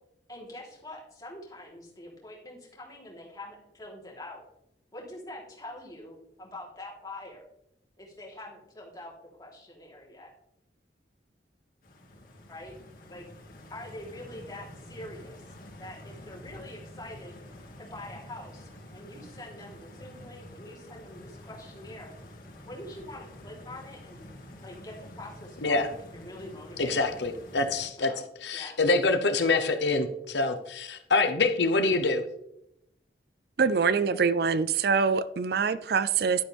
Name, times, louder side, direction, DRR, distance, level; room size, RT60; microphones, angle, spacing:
voice 1, 0.3-4.4 4.9-7.4 8.0-9.1 9.4-10.3 12.5-12.7 13.1-13.3 13.7-15.4 15.8-17.4 17.8-22.1 22.6-27.2 28.0-28.2 28.5-28.7, left 1 dB, 20° left, 3.4 m, -44 dB
Stream, 11.8-27.9, left 1 dB, 55° left, 2.2 m, -48 dB
voice 2, 26.8-28.1 28.4-32.2, left 3 dB, 80° left, 0.9 m, -25 dB
voice 3, 33.6-36.4, right 5 dB, 60° right, 0.4 m, -24 dB
11.5 x 9.3 x 3.5 m
head